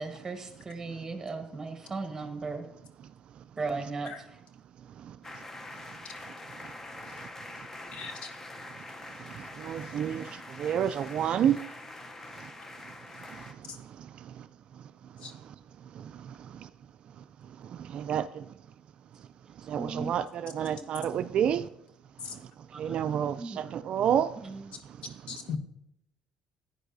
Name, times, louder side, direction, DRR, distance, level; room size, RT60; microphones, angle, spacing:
voice 1, 0.0-2.6 3.6-4.3 19.7-20.1 20.7-21.0 22.7-23.0 23.4-23.8 24.4-24.6, right 3 dB, 20° right, 1.3 m, -37 dB
sound 1, 5.2-13.5, left 2 dB, 20° left, 0.7 m, -45 dB
voice 2, 7.9-8.3 15.2-15.3 22.2-22.3 25.3-25.6, left 6 dB, 60° left, 1.1 m, -37 dB
voice 3, 9.6-10.2 10.6-11.6 17.9-18.2 19.7-21.6 22.8-24.3, right 9 dB, 55° right, 0.3 m, -28 dB
11.5 x 9.1 x 2.7 m
cardioid pair, 100°, 2 cm